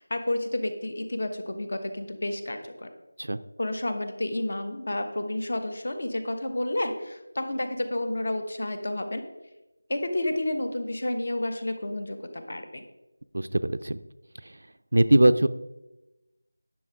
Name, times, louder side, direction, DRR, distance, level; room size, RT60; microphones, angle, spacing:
voice 1, 0.0-2.9 3.6-9.2 9.9-12.8, left 1 dB, 40° left, 7 dB, 1.1 m, -30 dB
voice 2, 13.3-14.0 14.4-14.5 14.9-15.5, right 1 dB, 65° right, 12 dB, 0.5 m, -21 dB
10.0 x 6.1 x 4.8 m, 1.0 s
figure-of-eight pair, 180°, 0 cm